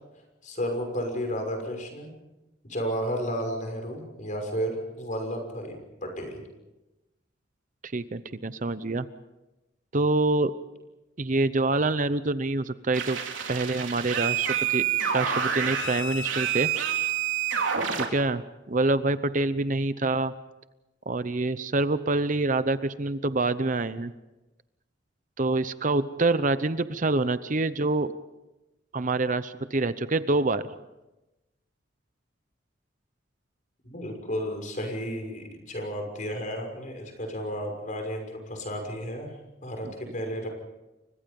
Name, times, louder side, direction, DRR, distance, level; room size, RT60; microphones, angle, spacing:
voice 1, 0.4-2.1 2.6-6.4 33.8-39.3 39.6-40.5, equal, 40° left, 3 dB, 6.1 m, -32 dB
voice 2, 7.8-9.1 9.9-10.5 11.2-13.2 13.5-14.8 15.1-16.7 17.9-20.3 21.1-24.1 25.4-28.1 28.9-30.7 39.8-39.9, right 2 dB, 40° right, 13 dB, 0.8 m, -26 dB
sound 1, 12.9-18.1, right 8 dB, 90° right, 3.9 m, -28 dB
30.0 x 24.5 x 5.4 m, 1.0 s
head